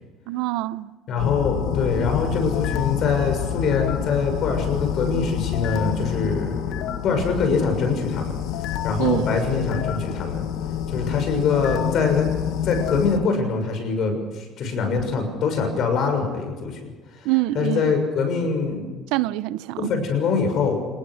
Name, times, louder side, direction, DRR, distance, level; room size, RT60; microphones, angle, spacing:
voice 1, 0.3-0.9 9.0-9.3 17.2-17.9 19.1-19.9, right 18 dB, 80° right, 0.8 m, -25 dB
voice 2, 1.1-8.4 8.7-10.5 10.9-12.3 12.6-17.3 17.5-18.9 19.8-20.9, left 5 dB, 40° left, 6.5 m, -24 dB
sound 1, 1.2-13.3, left 9 dB, 60° left, 1.6 m, -27 dB
29.0 x 19.5 x 6.5 m
cardioid pair, 180°, 0 cm